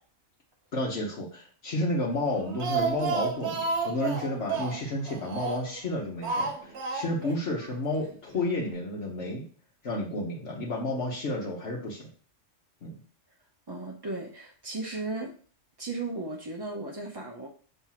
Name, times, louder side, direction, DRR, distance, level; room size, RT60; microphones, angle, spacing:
voice 1, 0.7-9.4 9.8-12.1 12.8-12.9, left 1 dB, 70° left, -4 dB, 1.4 m, -31 dB
Speech, 2.3-5.8 6.2-7.4 7.6-7.7 8.0-8.1, right 4 dB, 70° right, 1.1 m, -31 dB
voice 2, 13.7-15.3 15.8-17.5, right 3 dB, 30° right, -1 dB, 0.5 m, -35 dB
6.0 x 3.2 x 5.7 m, 0.43 s
omnidirectional pair, 1.2 m